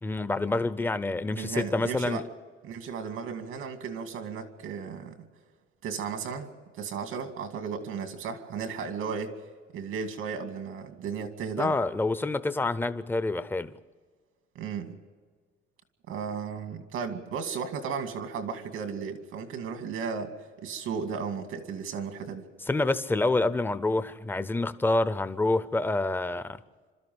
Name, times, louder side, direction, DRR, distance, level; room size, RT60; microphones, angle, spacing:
voice 1, 0.0-2.2 11.6-13.7 22.7-26.6, left 2 dB, 10° left, 0.6 m, -27 dB
voice 2, 1.3-2.2 2.6-5.3 5.8-6.5 6.7-9.3 9.7-11.8 14.5-15.0 16.1-20.3 20.6-22.5, right 6 dB, 90° right, 2.4 m, -35 dB
27.5 x 13.5 x 7.8 m
cardioid pair, 160°, 21 cm